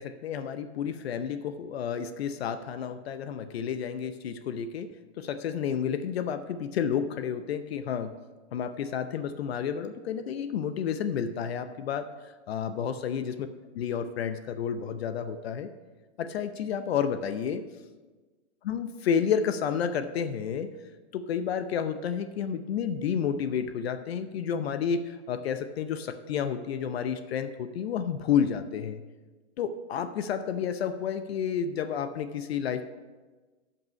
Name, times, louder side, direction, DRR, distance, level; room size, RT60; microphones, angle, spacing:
voice 1, 0.0-4.9 5.2-8.1 8.5-12.1 12.5-13.5 13.7-15.7 16.2-17.6 18.6-20.7 21.1-29.0 29.6-32.9, left 7 dB, 60° left, 10 dB, 0.7 m, -30 dB
14.0 x 5.5 x 5.2 m, 1.3 s
hypercardioid pair, 155°, 35 cm